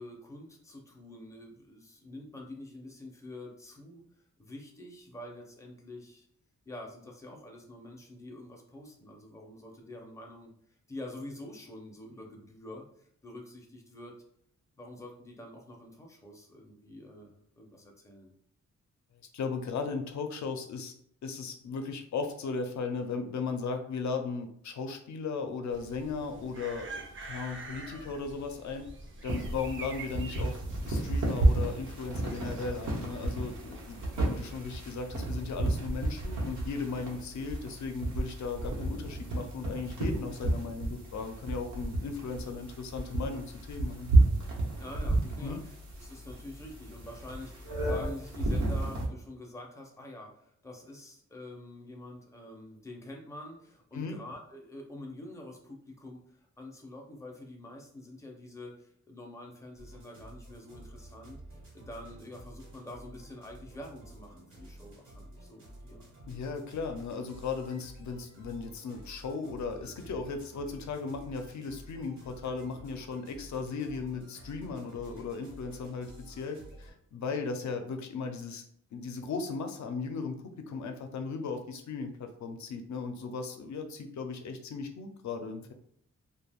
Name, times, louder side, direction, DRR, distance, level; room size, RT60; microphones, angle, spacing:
voice 1, 0.0-4.0 4.4-6.2 6.7-10.5 10.9-14.2 14.8-18.3 37.0-37.1 44.7-66.1, left 1 dB, 10° left, 0 dB, 0.4 m, -46 dB
voice 2, 19.3-20.9 21.2-28.9 29.2-30.6 30.9-44.1 45.4-45.6 53.9-54.2 66.3-78.6 78.9-85.7, left 4 dB, 75° left, 6 dB, 0.5 m, -36 dB
sound 1, 25.7-34.8, right 2 dB, 45° right, 0.4 m, -46 dB
sound 2, 29.3-49.1, right 2 dB, 90° right, 0.9 m, -31 dB
sound 3, 59.8-76.9, right 1 dB, 70° right, 1.1 m, -51 dB
2.3 x 2.2 x 3.3 m, 0.66 s
wide cardioid pair, 170°, 29 cm